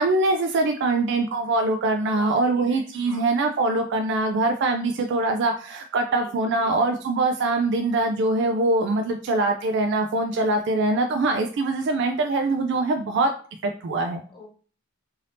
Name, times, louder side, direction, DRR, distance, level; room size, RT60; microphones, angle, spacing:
voice 1, 0.0-13.3 13.6-14.2, right 2 dB, 55° right, 5 dB, 0.3 m, -23 dB
voice 2, 2.1-3.2 6.1-7.0 14.3-14.5, left 1 dB, 25° left, 0 dB, 0.7 m, -45 dB
2.7 x 2.6 x 3.3 m, 0.40 s
head